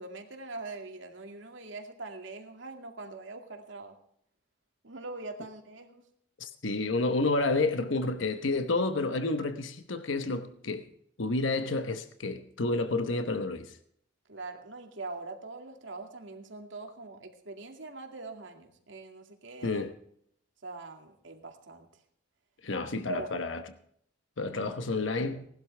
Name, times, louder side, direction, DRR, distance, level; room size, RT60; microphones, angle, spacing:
voice 1, 0.0-3.9 4.8-6.0 14.3-19.8 20.6-21.9 23.1-23.4, right 3 dB, 75° right, 2.3 m, -42 dB
voice 2, 6.4-10.8 11.2-13.8 19.6-19.9 22.6-23.6 24.4-25.5, left 3 dB, 80° left, 1.0 m, -30 dB
19.0 x 12.0 x 3.3 m
head